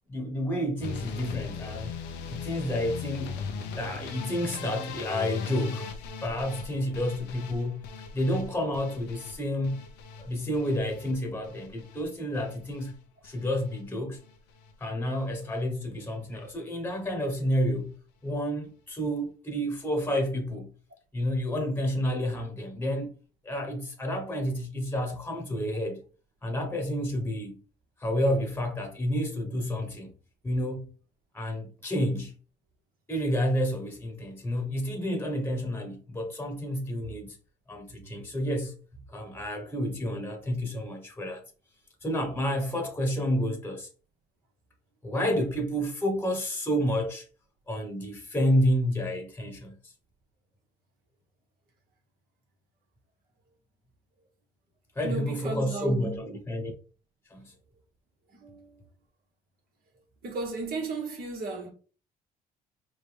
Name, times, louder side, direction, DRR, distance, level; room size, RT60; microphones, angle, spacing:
voice 1, 0.1-1.9 2.3-3.4 3.8-5.9 6.2-7.9 8.1-9.8 10.2-12.9 13.2-14.2 14.8-17.9 18.2-20.7 21.1-23.1 23.4-26.0 26.4-27.6 28.0-30.1 30.4-30.9 31.3-32.3 33.1-37.4 37.7-38.8 39.1-41.4 42.0-43.9 45.0-47.3 47.7-49.9 54.9-56.7 57.3-57.5, equal, 10° left, 1.2 m, -30 dB
sound 1, 0.8-12.9 13.2-13.8 14.1-14.7 15.0-15.3 15.6-15.7 15.9-16.0, left 5 dB, 90° left, 0.8 m, -39 dB
voice 2, 55.0-56.3 58.3-58.8 60.2-61.7, right 3 dB, 60° right, 2.2 m, -35 dB
4.9 x 2.7 x 3.4 m
cardioid pair, 110°, 17 cm